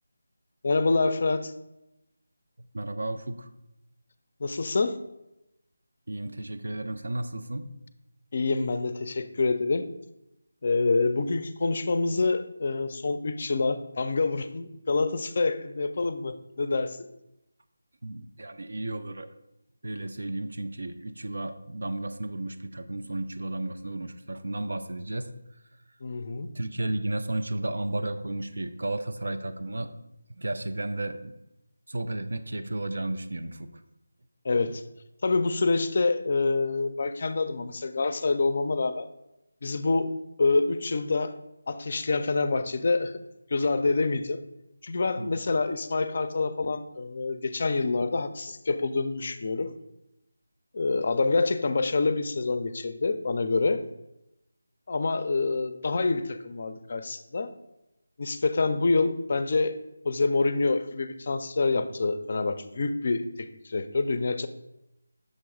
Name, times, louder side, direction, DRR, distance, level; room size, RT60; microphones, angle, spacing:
voice 1, 0.6-1.5 4.4-5.0 8.3-9.9 10.6-17.1 26.0-26.5 34.4-34.8 35.2-39.1 39.6-40.1 40.4-41.3 41.7-43.2 43.5-44.4 44.8-49.7 50.7-53.8 54.9-57.5 58.2-59.8 60.0-64.5, left 3 dB, 45° left, 11 dB, 0.4 m, -26 dB
voice 2, 2.7-3.5 6.1-7.7 18.0-19.3 19.8-25.3 26.5-29.9 30.4-31.3 31.9-33.7 34.7-34.8 45.2-45.3, right 2 dB, 70° right, 8 dB, 0.5 m, -33 dB
6.5 x 3.1 x 4.7 m, 0.88 s
figure-of-eight pair, 165°, 0 cm